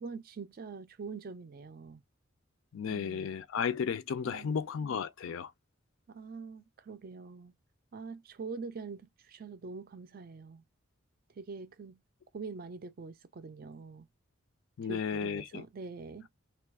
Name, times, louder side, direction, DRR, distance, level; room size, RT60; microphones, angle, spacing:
voice 1, 0.0-2.0 2.9-3.3 4.2-4.6 6.1-7.5 7.9-10.6 11.4-12.0 12.3-14.1 14.9-16.3, right 4 dB, 45° right, 0.4 m, -44 dB
voice 2, 2.7-5.5 14.8-15.6, left 6 dB, 65° left, 0.4 m, -34 dB
3.1 x 2.3 x 3.5 m
head